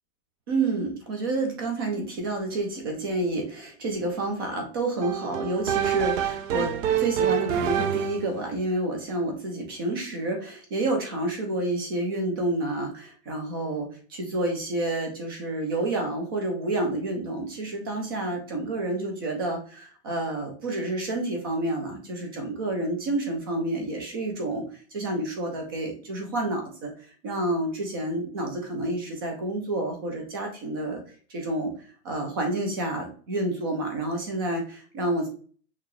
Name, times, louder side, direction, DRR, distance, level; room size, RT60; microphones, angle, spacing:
voice 1, 0.5-31.0 31.3-31.7 32.0-35.3, right 2 dB, 20° right, 3 dB, 0.3 m, -29 dB
sound 1, 5.0-8.4, right 9 dB, 65° right, 0.7 m, -26 dB
5.7 x 2.9 x 3.0 m, 0.42 s
supercardioid pair, 170°, 40 cm